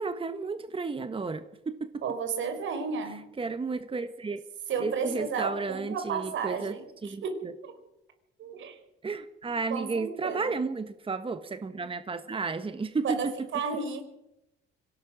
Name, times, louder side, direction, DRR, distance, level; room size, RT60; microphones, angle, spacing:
voice 1, 0.0-1.7 3.4-4.4 4.8-6.7 7.0-7.5 9.0-13.3, right 4 dB, 25° right, 10 dB, 1.4 m, -32 dB
voice 2, 2.0-3.2 4.7-7.4 8.4-8.8 9.7-10.6 13.0-14.0, right 5 dB, 75° right, 7 dB, 4.8 m, -32 dB
25.5 x 17.5 x 6.3 m, 0.91 s
cardioid pair, 90°, 20 cm